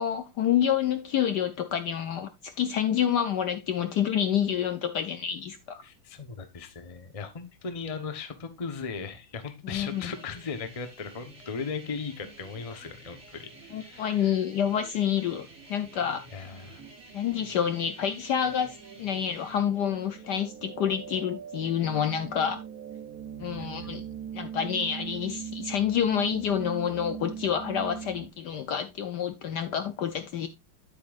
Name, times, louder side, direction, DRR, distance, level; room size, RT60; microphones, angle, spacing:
voice 1, 0.0-5.8 9.6-10.1 13.7-16.3 17.1-22.6 23.4-24.0 24.3-30.5, left 9 dB, 65° left, 1.1 m, -28 dB
voice 2, 5.8-14.4 16.3-16.8 23.6-23.9, left 5 dB, 25° left, 0.7 m, -38 dB
sound 1, 9.9-19.7, right 2 dB, 35° right, 2.2 m, -51 dB
sound 2, 16.4-28.3, right 8 dB, 60° right, 1.0 m, -41 dB
9.1 x 8.4 x 2.5 m
omnidirectional pair, 2.3 m